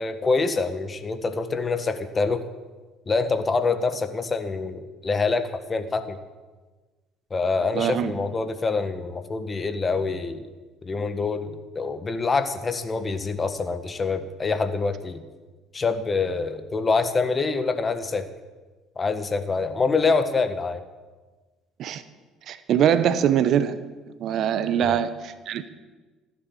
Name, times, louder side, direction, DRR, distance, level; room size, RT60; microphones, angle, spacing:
voice 1, 0.0-2.5 3.1-6.2 7.3-10.4 10.8-15.2 15.7-18.3 19.0-20.8 24.8-25.0, left 4 dB, 30° left, 9 dB, 1.6 m, -25 dB
voice 2, 7.7-8.1 21.8-22.0 22.5-23.8 24.2-25.7, right 9 dB, 55° right, 13 dB, 1.0 m, -23 dB
15.5 x 9.9 x 7.4 m, 1.3 s
hypercardioid pair, 55°, 0 cm